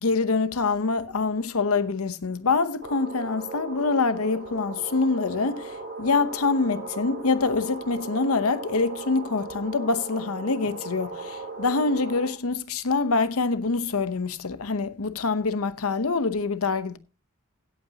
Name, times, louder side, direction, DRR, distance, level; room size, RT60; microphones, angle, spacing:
voice 1, 0.0-17.0, left 4 dB, 70° left, 0.8 m, -25 dB
sound 1, 2.8-12.3, right 3 dB, 50° right, 3.6 m, -38 dB
16.5 x 8.6 x 2.8 m
head